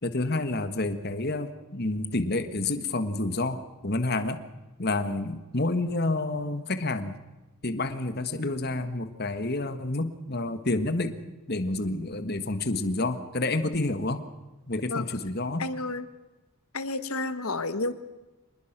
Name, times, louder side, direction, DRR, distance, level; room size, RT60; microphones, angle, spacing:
voice 1, 0.0-4.4 4.8-7.2 7.6-11.2 11.5-14.2 14.7-15.7, left 2 dB, 45° left, 10 dB, 1.6 m, -29 dB
voice 2, 15.6-16.1 16.7-17.9, left 2 dB, 75° left, 12 dB, 1.4 m, -30 dB
26.0 x 20.5 x 6.0 m, 1.1 s
head